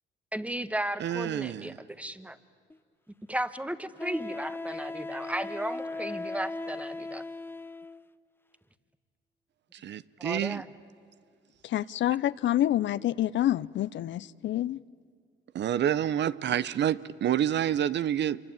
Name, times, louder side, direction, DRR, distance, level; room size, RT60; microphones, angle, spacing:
voice 1, 0.3-2.4 3.3-7.2 10.2-10.7, right 1 dB, 5° right, 1.4 m, -35 dB
voice 2, 1.0-1.7 9.7-10.6 15.5-18.4, right 10 dB, 60° right, 0.8 m, -28 dB
Wind instrument woodwind instrument, 2.7-2.8 4.0-8.1, left 3 dB, 10° left, 0.6 m, -38 dB
voice 3, 11.6-14.8, left 12 dB, 70° left, 0.7 m, -27 dB
27.0 x 24.5 x 8.9 m
cardioid pair, 90°, 20 cm